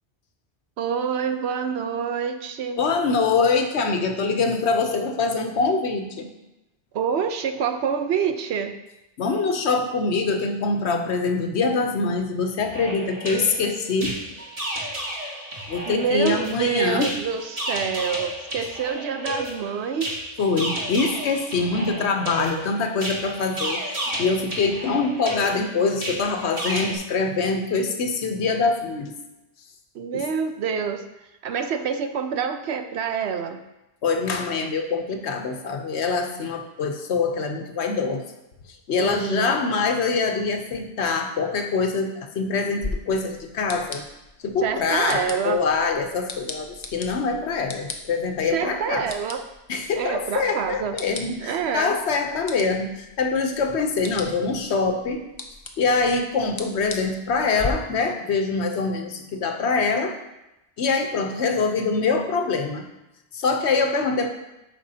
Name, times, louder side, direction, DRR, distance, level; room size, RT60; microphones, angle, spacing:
voice 1, 0.8-2.8 6.9-8.7 15.9-20.1 29.9-31.0 31.4-33.6 39.0-39.6 44.6-45.6 48.5-49.4 50.0-50.9 51.4-52.0, right 6 dB, 75° right, 8 dB, 0.9 m, -26 dB
voice 2, 2.8-6.3 9.2-14.2 15.7-17.1 20.4-29.2 30.1-30.2 34.0-38.2 38.9-44.0 44.4-49.1 49.7-55.2 55.8-60.1 60.8-62.8 63.3-64.3, left 4 dB, 85° left, 5 dB, 1.1 m, -24 dB
sound 1, 12.6-27.0, right 1 dB, 35° right, 1.4 m, -32 dB
sound 2, 42.8-57.7, left 3 dB, 30° left, 0.6 m, -39 dB
8.9 x 6.1 x 2.8 m, 0.93 s
omnidirectional pair, 1.1 m